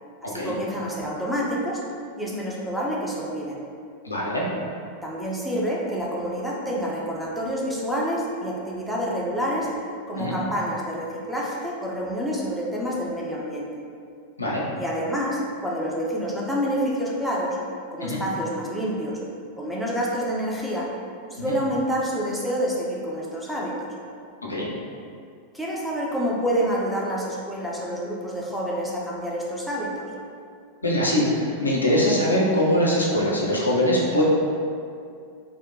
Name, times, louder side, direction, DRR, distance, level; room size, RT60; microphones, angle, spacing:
voice 1, 0.2-1.8 2.2-3.6 5.0-9.7 10.1-13.7 14.8-17.6 17.9-19.2 19.6-20.9 21.3-23.9 25.5-30.1, equal, ahead, -5 dB, 0.4 m, -28 dB
voice 2, 4.0-4.5 10.2-10.3 14.4-14.6 18.0-18.2 21.4-21.5 24.4-24.7 30.8-34.2, left 1 dB, 80° left, -4 dB, 0.4 m, -22 dB
2.6 x 2.1 x 2.5 m, 2.3 s
figure-of-eight pair, 90°, 0 cm